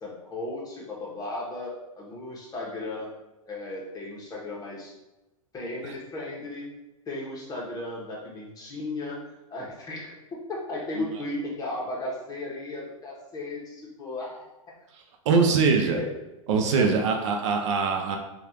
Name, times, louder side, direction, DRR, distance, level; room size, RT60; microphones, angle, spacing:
voice 1, 0.0-3.1 3.5-4.9 5.5-6.7 7.1-9.2 9.5-14.5 15.6-16.1 16.7-16.9, left 2 dB, 20° left, -4 dB, 1.2 m, -35 dB
voice 2, 15.3-16.0 16.5-18.2, right 5 dB, 60° right, 3 dB, 0.6 m, -22 dB
4.7 x 2.4 x 2.9 m, 1.0 s
hypercardioid pair, 105°, 18 cm